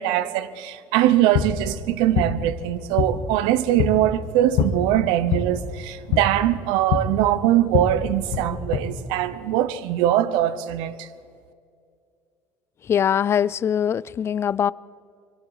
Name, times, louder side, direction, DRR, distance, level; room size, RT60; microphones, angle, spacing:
voice 1, 0.0-11.1, right 13 dB, 85° right, 0.9 m, -22 dB
sound 1, 1.0-8.8, left 7 dB, 80° left, 2.0 m, -27 dB
voice 2, 12.9-14.7, left 8 dB, 30° left, 0.4 m, -22 dB
24.5 x 23.5 x 4.9 m
cardioid pair, 125°, 8 cm